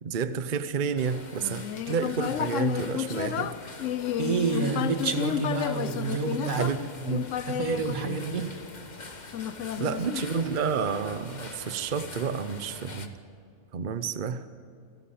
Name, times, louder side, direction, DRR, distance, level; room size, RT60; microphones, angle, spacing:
voice 1, 0.0-3.5 6.5-6.8 7.1-7.3 9.8-13.2 13.7-14.4, right 6 dB, 40° right, 11 dB, 0.8 m, -30 dB
sound 1, 1.0-13.1, left 3 dB, 35° left, 1.3 m, -44 dB
Human voice, 1.4-8.7 9.3-10.8, left 10 dB, 65° left, 1.0 m, -32 dB
voice 2, 4.2-6.7 7.5-8.5, right 5 dB, 80° right, 6 dB, 2.1 m, -29 dB
29.0 x 13.5 x 8.5 m, 2.5 s
omnidirectional pair, 1.4 m